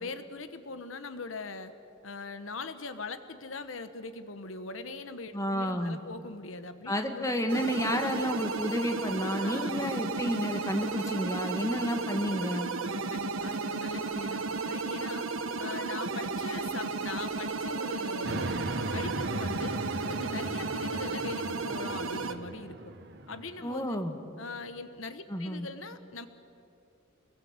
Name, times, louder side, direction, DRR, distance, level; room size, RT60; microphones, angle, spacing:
voice 1, 0.0-1.7 2.0-7.5 8.0-8.2 9.4-9.7 12.8-15.3 15.6-18.5 18.9-19.8 20.1-22.9 23.3-24.0 24.4-26.3, left 3 dB, 75° left, 10 dB, 1.2 m, -41 dB
voice 2, 5.3-6.0 6.9-12.7 23.6-24.2 25.3-25.7, equal, 15° left, 5 dB, 1.6 m, -31 dB
sound 1, 7.5-22.3, right 4 dB, 85° right, 1.3 m, -34 dB
sound 2, 18.2-23.7, right 2 dB, 55° right, 1.6 m, -38 dB
26.5 x 21.0 x 8.1 m, 2.7 s
head